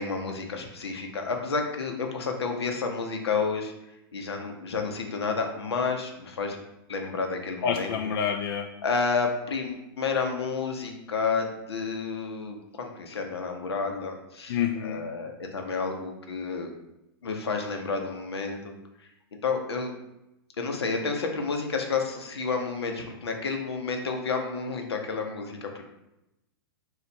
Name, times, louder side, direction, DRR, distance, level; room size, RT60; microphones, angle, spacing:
voice 1, 0.0-3.7 4.1-6.6 6.9-7.9 8.8-16.7 17.2-18.7 19.4-20.0 20.6-25.8, left 4 dB, 90° left, 3 dB, 0.8 m, -30 dB
voice 2, 7.6-8.7 14.5-15.0, left 8 dB, 60° left, 4 dB, 0.4 m, -28 dB
4.0 x 2.4 x 4.2 m, 0.90 s
hypercardioid pair, 125°, 13 cm